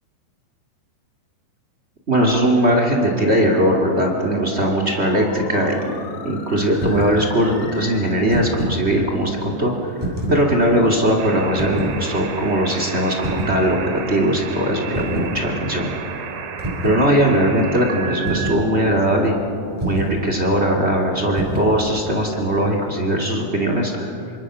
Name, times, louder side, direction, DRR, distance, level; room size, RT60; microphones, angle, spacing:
voice 1, 2.1-6.0 6.2-9.7 10.3-15.9 16.8-19.3 19.8-24.1, right 1 dB, 35° right, 1 dB, 1.0 m, -19 dB
sound 1, 3.1-8.1, left 5 dB, 65° left, 3.9 m, -38 dB
sound 2, 6.7-7.2 8.1-8.8 10.0-10.5 11.5-12.0 13.2-13.6 14.9-15.4 16.6-17.0 18.3-18.7 19.8-20.2 21.4-21.8, right 1 dB, 5° right, 5.9 m, -26 dB
sound 3, 11.2-18.6, right 7 dB, 75° right, 4.1 m, -33 dB
28.0 x 26.0 x 6.3 m, 2.8 s
omnidirectional pair, 5.4 m